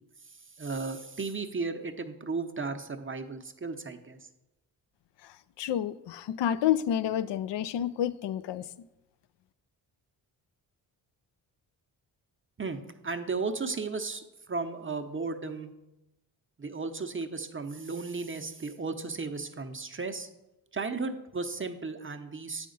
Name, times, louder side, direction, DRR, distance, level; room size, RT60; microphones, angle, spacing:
voice 1, 0.2-4.3 12.6-15.7 16.6-20.3 20.7-22.7, right 4 dB, 25° right, 6 dB, 0.7 m, -35 dB
voice 2, 5.2-8.7, left 10 dB, 60° left, 16 dB, 0.5 m, -29 dB
8.3 x 5.2 x 3.9 m, 0.94 s
supercardioid pair, 45°, 50 cm